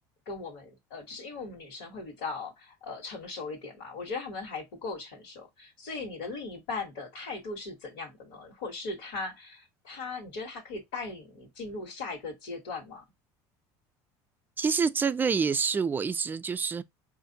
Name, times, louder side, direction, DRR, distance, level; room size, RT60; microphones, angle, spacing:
voice 1, 0.3-13.0, left 3 dB, 90° left, 1.3 m, -38 dB
voice 2, 14.6-16.8, right 5 dB, 20° right, 0.3 m, -27 dB
5.0 x 2.5 x 2.7 m
supercardioid pair, 110°, 10 cm